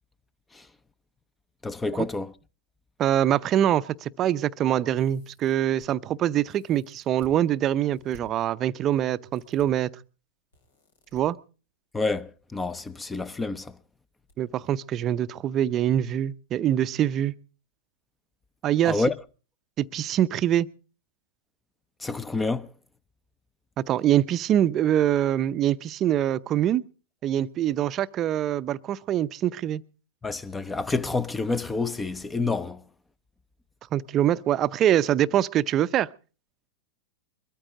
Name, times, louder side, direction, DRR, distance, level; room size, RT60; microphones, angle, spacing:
voice 1, 1.6-2.3 11.9-13.7 18.8-19.1 22.0-22.7 30.2-32.8, left 3 dB, 10° left, 0.8 m, -28 dB
voice 2, 3.0-9.9 11.1-11.4 14.4-17.3 18.6-19.0 19.8-20.7 23.8-26.8 27.2-29.8 33.9-36.1, right 11 dB, 35° right, 0.7 m, -24 dB
sound 1, 4.9-5.9 6.4-7.4 7.9-8.2 9.3-9.7 10.5-11.2 12.3-12.7 13.0-13.1 14.3-14.4 14.8-14.9, left 2 dB, 80° left, 5.4 m, -53 dB
22.0 x 14.0 x 3.8 m
hypercardioid pair, 100°, 0 cm